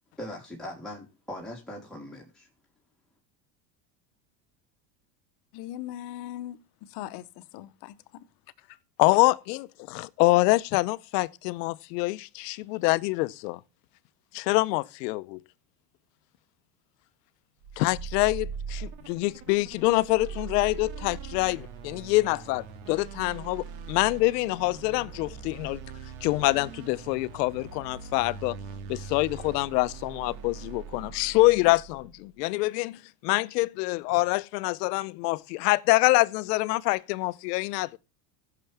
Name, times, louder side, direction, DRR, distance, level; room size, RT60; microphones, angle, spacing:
voice 1, 0.2-2.5, left 1 dB, ahead, 3.2 m, -40 dB
voice 2, 5.5-8.2 8.6-8.8, left 13 dB, 55° left, 1.0 m, -40 dB
voice 3, 9.0-13.6 14.3-15.4 17.8-25.8 26.2-28.6 28.9-38.0, left 21 dB, 75° left, 0.7 m, -25 dB
sound 1, 17.6-32.2, right 6 dB, 70° right, 2.1 m, -41 dB
15.5 x 6.8 x 3.4 m
supercardioid pair, 115°, 48 cm